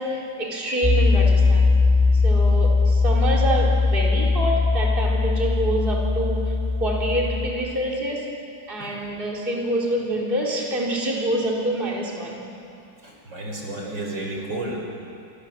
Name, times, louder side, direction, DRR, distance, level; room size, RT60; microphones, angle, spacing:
voice 1, 0.0-1.7 2.1-8.3 8.7-12.4, right 1 dB, 25° right, -2 dB, 3.9 m, -26 dB
sound 1, 0.8-7.5, left 3 dB, 15° left, 5.3 m, -20 dB
voice 2, 13.0-14.8, right 2 dB, 70° right, 0 dB, 5.4 m, -32 dB
29.0 x 26.5 x 7.4 m, 2.5 s
omnidirectional pair, 2.0 m